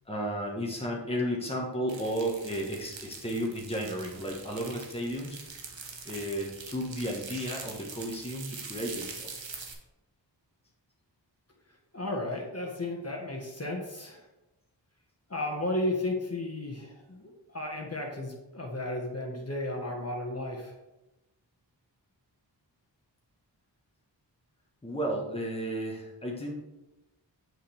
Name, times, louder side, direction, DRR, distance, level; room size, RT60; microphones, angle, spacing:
voice 1, 0.0-5.4 6.0-9.3 24.8-26.5, equal, 15° left, -1 dB, 1.4 m, -33 dB
sound 1, 1.9-9.7, right 4 dB, 80° right, 1.2 m, -44 dB
voice 2, 11.9-14.2 15.3-20.7, left 1 dB, 35° left, 0 dB, 1.5 m, -34 dB
7.6 x 5.6 x 3.5 m, 1.0 s
cardioid pair, 45°, 44 cm